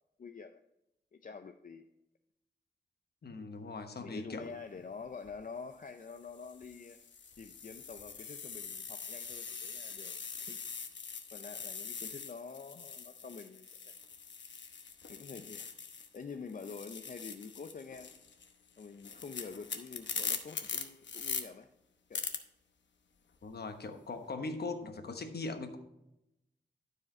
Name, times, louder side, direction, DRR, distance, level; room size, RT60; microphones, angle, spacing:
voice 1, 0.2-0.6 1.1-1.9 4.0-7.0 7.4-10.2 10.5-10.6 11.3-13.9 15.1-15.7 16.1-18.2 18.8-21.7 22.1-22.3, left 5 dB, 45° left, 7 dB, 0.5 m, -47 dB
voice 2, 3.2-4.5 23.4-25.8, left 3 dB, 60° left, 6 dB, 1.1 m, -40 dB
sound 1, 5.1-5.3 6.1-16.2 16.5-21.4 22.1-22.4, left 6 dB, 85° left, 1.0 m, -42 dB
12.0 x 5.0 x 4.3 m, 0.89 s
wide cardioid pair, 105°, 18 cm